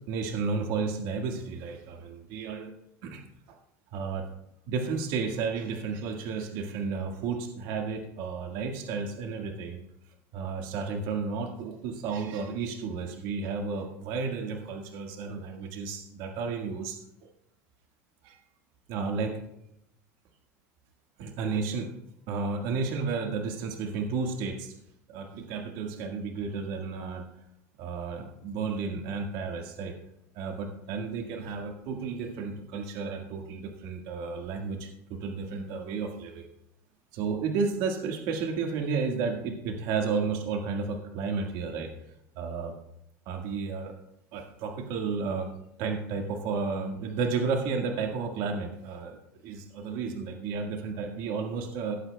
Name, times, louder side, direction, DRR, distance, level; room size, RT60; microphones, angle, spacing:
voice 1, 0.1-2.7 3.0-3.2 3.9-4.2 4.7-9.8 10.3-17.0 18.2-18.4 18.9-19.4 21.2-21.9 22.3-24.7 25.1-27.2 27.8-29.9 30.3-36.5 37.1-41.9 42.3-42.7 43.2-43.9 44.3-45.5 45.8-49.2 49.4-52.0, right 5 dB, 65° right, 2 dB, 1.7 m, -32 dB
17.5 x 8.2 x 2.3 m, 0.79 s
hypercardioid pair, 95°, 8 cm